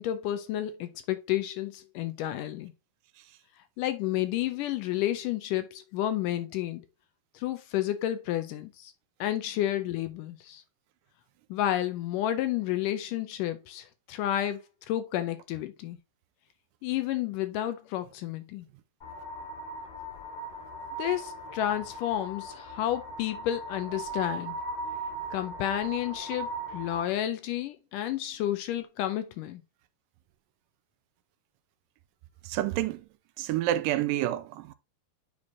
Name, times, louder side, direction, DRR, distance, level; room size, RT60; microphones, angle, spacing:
voice 1, 0.0-2.7 3.8-6.9 7.4-8.9 9.2-10.6 11.5-14.6 14.9-16.0 16.8-18.7 21.0-24.6 25.3-29.6, left 12 dB, 80° left, 2.1 m, -31 dB
sound 1, 19.0-27.1, right 2 dB, 55° left, 4.8 m, -38 dB
voice 2, 32.4-33.1 33.4-34.7, right 13 dB, 80° right, 2.2 m, -28 dB
9.7 x 4.4 x 2.8 m
omnidirectional pair, 4.0 m